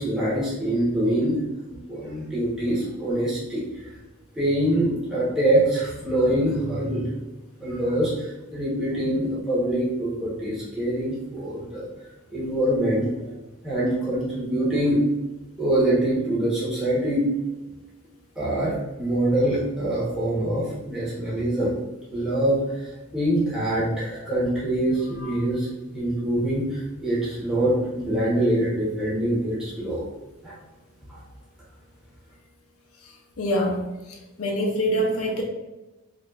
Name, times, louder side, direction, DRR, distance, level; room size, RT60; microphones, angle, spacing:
voice 1, 0.0-1.4 1.7-3.6 4.3-7.1 7.6-11.9 12.3-13.3 13.6-15.0 15.6-17.2 18.4-21.7 22.1-30.0 30.4-30.5 31.1-31.2, right 1 dB, 5° right, -8 dB, 1.2 m, -24 dB
voice 2, 33.4-33.8 34.4-35.4, equal, 80° left, 1 dB, 0.8 m, -24 dB
5.1 x 2.5 x 2.5 m, 1.1 s
head